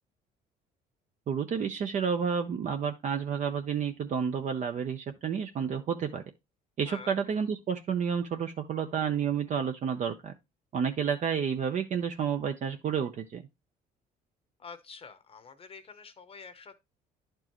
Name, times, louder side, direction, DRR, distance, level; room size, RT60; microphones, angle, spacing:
voice 1, 1.3-6.2 6.8-10.3 10.7-13.4, right 7 dB, 45° right, 0.7 m, -30 dB
voice 2, 6.8-7.1 14.6-16.8, left 5 dB, 35° left, 0.9 m, -47 dB
11.0 x 4.5 x 3.0 m
cardioid pair, 110°, 17 cm